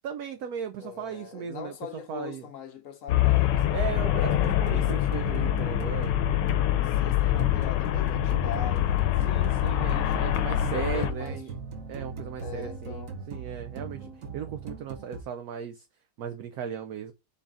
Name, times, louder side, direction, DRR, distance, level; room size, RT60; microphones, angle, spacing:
voice 1, 0.0-2.5 3.7-6.2 9.2-11.6 11.9-15.9 16.2-17.1, right 8 dB, 70° right, 1.0 m, -37 dB
voice 2, 0.8-4.0 4.7-4.9 6.8-9.4 9.8-11.4 12.4-13.2, left 7 dB, 60° left, 1.0 m, -41 dB
Traffic noise roadway noise, 3.1-11.1, left 12 dB, 85° left, 1.3 m, -25 dB
sound 1, 4.2-15.2, right 5 dB, 55° right, 1.3 m, -39 dB
4.0 x 3.7 x 3.5 m
omnidirectional pair, 1.9 m